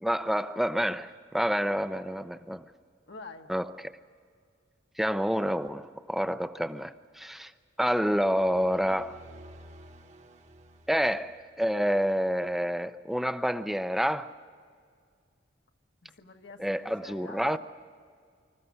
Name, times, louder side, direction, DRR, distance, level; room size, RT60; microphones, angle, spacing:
voice 1, 0.0-2.6 3.5-3.7 5.0-7.5 7.8-9.2 10.9-14.3 16.6-17.6, equal, ahead, 0.5 m, -28 dB
voice 2, 3.1-3.5 16.0-17.6, left 3 dB, 65° left, 1.6 m, -46 dB
sound 1, 8.0-11.8, right 1 dB, 35° right, 1.1 m, -52 dB
26.0 x 14.0 x 9.6 m
head